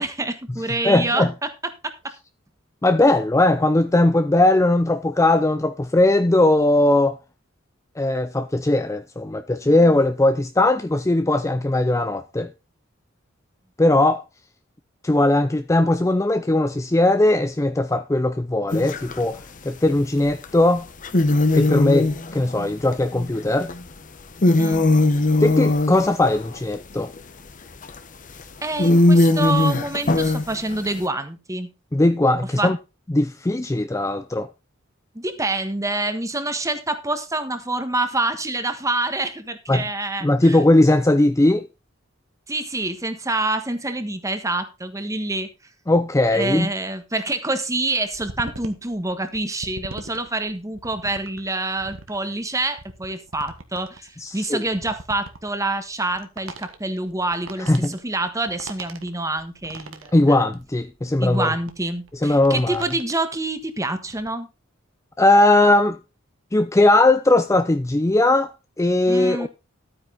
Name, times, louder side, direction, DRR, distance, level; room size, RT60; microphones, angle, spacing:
voice 1, 0.0-1.5 1.8-1.9 9.6-9.8 24.6-24.8 28.6-31.7 32.6-32.7 35.1-40.6 42.5-45.5 46.3-57.7 58.0-60.4 61.2-64.5 69.1-69.5, right 2 dB, 15° right, 1.4 m, -27 dB
voice 2, 0.8-1.3 2.8-7.2 8.0-12.5 13.8-14.2 15.0-20.9 21.5-23.7 25.4-27.1 31.9-32.8 33.1-34.5 39.7-39.8 40.2-41.7 45.9-46.7 54.2-54.6 57.7-58.0 60.1-61.5 62.2-62.8 65.2-66.0 66.5-69.5, left 2 dB, 15° left, 0.5 m, -19 dB
sound 1, 18.7-19.3 20.4-20.5 21.0-23.8 24.2-27.2 27.8-28.0 28.4-28.5 28.8-31.0, left 2 dB, 40° left, 0.9 m, -19 dB
sound 2, 48.0-63.4 63.8-64.3, right 2 dB, 70° right, 1.7 m, -41 dB
12.5 x 9.0 x 3.9 m
head